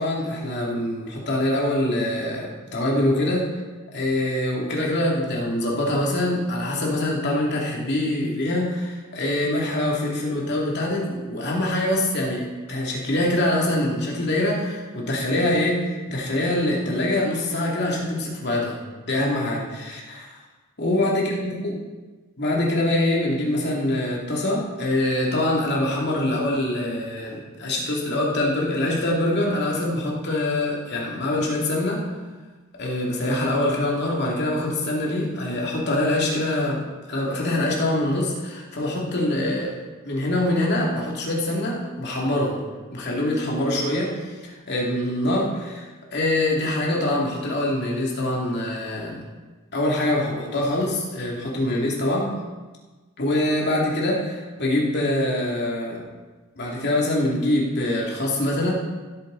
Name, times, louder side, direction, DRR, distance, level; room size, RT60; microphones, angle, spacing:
voice 1, 0.0-3.5 3.9-18.8 19.1-20.3 20.8-21.7 22.4-32.1 32.7-36.8 37.1-39.8 40.0-42.6 42.9-45.8 46.1-49.2 49.7-52.4 53.2-56.0 56.6-58.7, left 1 dB, 50° left, -3 dB, 2.6 m, -24 dB
16.0 x 8.4 x 4.0 m, 1.3 s
head